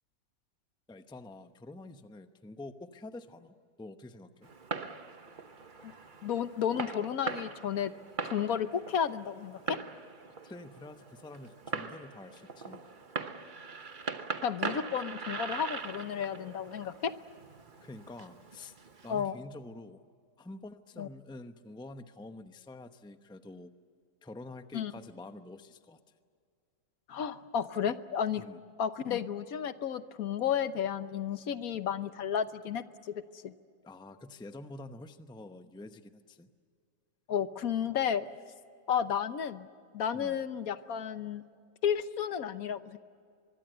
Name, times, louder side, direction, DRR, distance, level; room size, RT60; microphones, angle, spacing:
voice 1, 0.9-4.5 5.8-5.9 10.4-12.8 17.8-18.7 19.0-20.0 20.4-23.7 24.2-26.0 28.4-28.6 33.8-36.5 40.1-40.4, left 2 dB, 5° left, 8 dB, 0.6 m, -47 dB
Fireworks, 4.4-19.3, right 4 dB, 35° right, 1.1 m, -41 dB
voice 2, 6.2-7.9 8.2-9.8 14.4-17.1 19.1-19.4 21.0-21.1 24.7-24.9 27.1-28.4 28.8-33.5 37.3-38.3 38.9-39.7 39.9-41.4 41.8-43.0, left 8 dB, 70° left, 12 dB, 1.3 m, -32 dB
24.0 x 23.0 x 8.0 m, 2.2 s
omnidirectional pair, 1.6 m